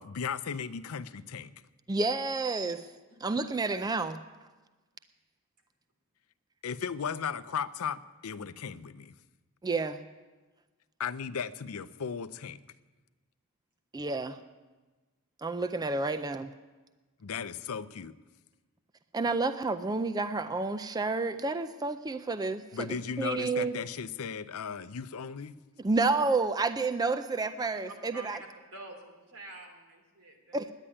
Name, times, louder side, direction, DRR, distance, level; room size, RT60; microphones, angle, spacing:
voice 1, 0.0-1.5 6.6-9.1 11.0-12.6 17.2-18.1 22.7-25.5, left 6 dB, 75° left, 15 dB, 0.5 m, -36 dB
voice 2, 1.9-2.9 3.2-4.2 9.6-10.0 13.9-14.4 15.4-16.5 19.1-23.8 25.8-28.4 30.5-30.7, right 3 dB, 20° right, 10 dB, 0.4 m, -30 dB
voice 3, 25.7-26.1 27.7-27.8 28.1-28.3 28.7-30.7, right 1 dB, 90° right, 2 dB, 3.0 m, -48 dB
10.0 x 9.8 x 9.8 m, 1.2 s
head